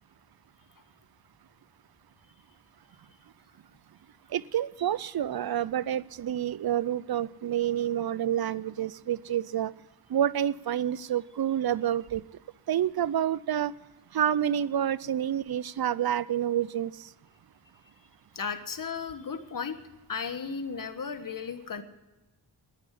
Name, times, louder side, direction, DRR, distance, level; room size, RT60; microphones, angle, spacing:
voice 1, 4.3-9.7 10.1-12.2 12.7-13.7 14.1-16.9, right 10 dB, 55° right, 20 dB, 0.6 m, -28 dB
voice 2, 18.3-19.7 20.1-21.8, left 6 dB, 45° left, 9 dB, 1.4 m, -35 dB
10.5 x 9.9 x 9.8 m, 1.1 s
cardioid pair, 65°, 44 cm